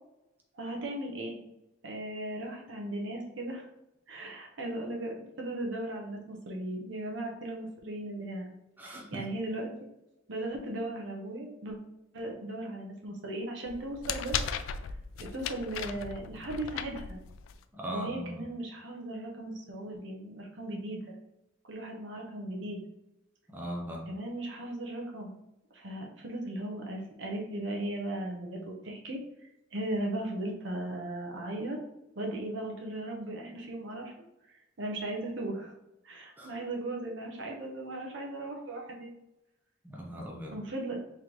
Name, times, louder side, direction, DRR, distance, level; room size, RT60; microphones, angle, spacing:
voice 1, 0.5-1.4 1.8-3.7 4.1-8.5 8.8-9.7 10.3-11.8 12.1-14.4 15.2-17.2 17.9-21.1 21.7-22.8 24.1-25.3 25.7-29.2 29.7-31.8 32.2-34.1 34.8-35.7 36.0-39.1 40.5-41.0, right 1 dB, 70° right, 0 dB, 0.8 m, -37 dB
voice 2, 8.8-9.2 17.7-18.5 23.5-24.1 36.4-36.5 39.8-40.5, right 1 dB, 10° right, -2 dB, 0.6 m, -39 dB
sound 1, 13.7-17.6, left 7 dB, 80° left, 0.3 m, -37 dB
3.8 x 3.3 x 3.1 m, 0.91 s
head